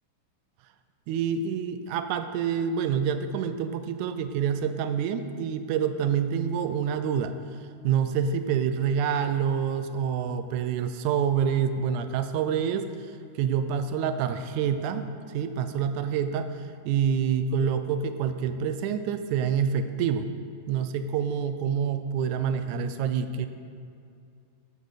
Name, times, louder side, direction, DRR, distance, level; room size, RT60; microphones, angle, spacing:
voice 1, 1.1-7.3 7.8-12.9 13.4-15.1 15.3-16.5 16.9-20.3 20.7-23.5, right 7 dB, 80° right, 9 dB, 1.8 m, -27 dB
13.0 x 9.3 x 4.1 m, 2.4 s
omnidirectional pair, 3.8 m